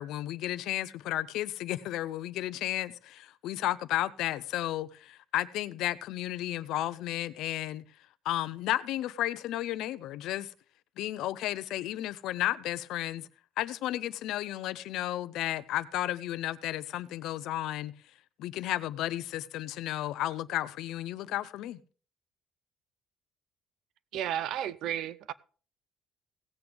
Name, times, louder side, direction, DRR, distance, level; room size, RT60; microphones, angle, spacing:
voice 1, 0.0-7.8 8.2-10.5 11.0-13.3 13.6-17.9 18.4-21.8, left 14 dB, 70° left, 0.6 m, -33 dB
voice 2, 24.1-25.3, right 10 dB, 65° right, 0.5 m, -33 dB
17.0 x 7.9 x 3.5 m
cardioid pair, 160°, 0 cm